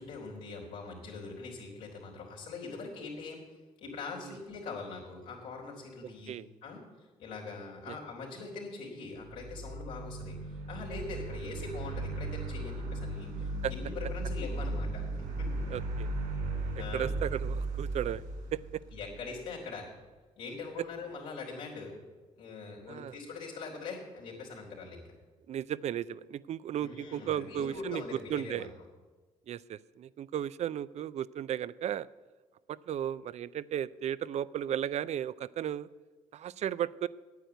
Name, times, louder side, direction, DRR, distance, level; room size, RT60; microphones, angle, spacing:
voice 1, 0.0-3.4 3.8-15.7 16.8-17.2 18.9-19.9 20.4-21.9 22.4-25.0 26.8-28.7, left 4 dB, 85° left, -4 dB, 3.6 m, -42 dB
sound 1, 9.2-19.4, right 2 dB, 90° right, 4.9 m, -36 dB
voice 2, 15.7-16.1 16.9-18.2 18.5-18.6 22.9-23.2 25.5-28.0 28.3-28.7 29.5-32.1 32.7-35.9 36.3-37.1, right 10 dB, 55° right, 18 dB, 0.4 m, -35 dB
9.4 x 8.8 x 7.9 m, 1.3 s
supercardioid pair, 60°, 13 cm